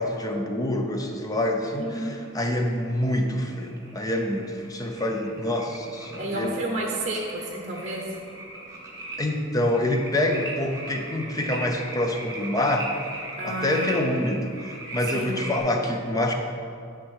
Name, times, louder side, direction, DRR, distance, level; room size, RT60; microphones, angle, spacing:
voice 1, 0.0-6.5 9.2-12.9 13.4-16.3, left 1 dB, 20° left, 3 dB, 0.6 m, -26 dB
sound 1, 1.8-15.6, right 2 dB, 15° right, 1.2 m, -39 dB
voice 2, 1.8-2.2 6.2-8.0 13.4-14.0 15.1-15.4, right 1 dB, 35° right, 0 dB, 0.9 m, -31 dB
9.9 x 3.5 x 5.6 m, 2.4 s
head